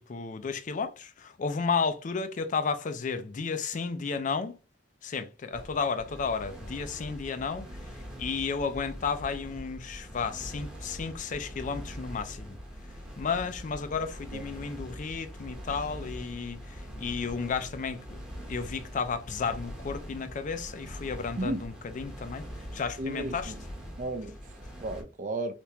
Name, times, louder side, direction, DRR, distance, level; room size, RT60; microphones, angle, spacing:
voice 1, 0.0-4.5 5.0-7.6 8.2-12.6 13.2-18.2 18.5-22.4 22.7-23.5, left 5 dB, 40° left, 0.4 m, -33 dB
sound 1, 5.5-25.0, equal, 5° right, 0.8 m, -43 dB
voice 2, 23.0-23.6 24.0-25.5, right 2 dB, 40° right, 0.5 m, -34 dB
3.4 x 2.9 x 2.8 m
head